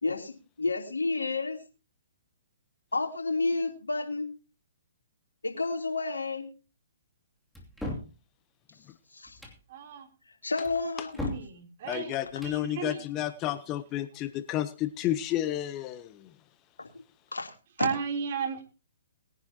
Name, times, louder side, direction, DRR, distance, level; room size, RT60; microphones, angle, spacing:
voice 1, 0.0-1.6 2.9-4.3 5.4-6.5 9.1-9.4 10.4-11.2 16.8-16.9 17.3-17.9, left 3 dB, 85° left, 3.1 m, -30 dB
Ball-bearing latched cupboard door, 7.5-8.1 9.3-9.6 10.6-11.5 12.3-12.6, left 2 dB, 5° left, 2.7 m, -37 dB
voice 2, 9.7-10.1 11.2-12.1 12.4-13.0 17.8-18.6, right 6 dB, 50° right, 3.3 m, -34 dB
voice 3, 11.9-16.3, left 13 dB, 25° left, 0.8 m, -31 dB
21.0 x 10.5 x 2.9 m
figure-of-eight pair, 130°, 0 cm